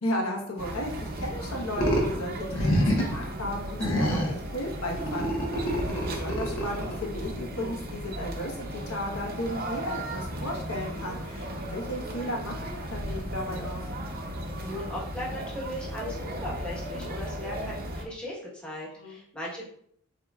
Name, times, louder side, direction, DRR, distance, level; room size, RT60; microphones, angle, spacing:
voice 1, 0.0-13.9 19.0-19.2, left 1 dB, 90° left, -1 dB, 1.2 m, -35 dB
sound 1, 0.6-18.0, right 1 dB, 45° right, 0.7 m, -36 dB
sound 2, 1.8-2.1 2.5-3.2 3.8-4.4 5.0-7.0, equal, 65° left, 1.1 m, -26 dB
voice 2, 14.6-19.6, equal, 5° left, -6 dB, 1.2 m, -37 dB
7.5 x 2.9 x 2.4 m, 0.67 s
head